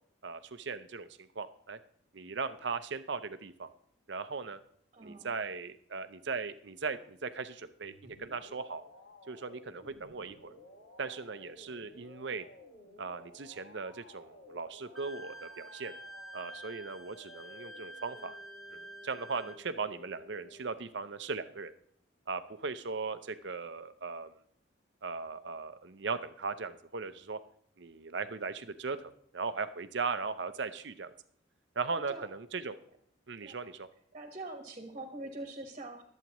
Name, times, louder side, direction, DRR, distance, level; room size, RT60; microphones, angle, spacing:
voice 1, 0.2-1.8 2.1-3.7 4.1-4.6 5.0-8.8 9.3-10.5 11.0-12.4 13.0-15.9 16.3-18.4 18.7-21.7 22.3-24.3 25.0-27.4 27.8-31.1 31.8-32.8 33.3-33.9, right 4 dB, 60° right, 12 dB, 0.7 m, -38 dB
voice 2, 4.9-5.3 31.9-32.3 33.4-33.6 34.1-36.0, right 2 dB, 30° right, 4 dB, 1.3 m, -44 dB
sound 1, 7.8-20.7, left 1 dB, 65° left, 1.6 m, -55 dB
Wind instrument woodwind instrument, 15.0-19.6, right 1 dB, ahead, 0.4 m, -49 dB
22.5 x 8.2 x 3.1 m, 0.65 s
head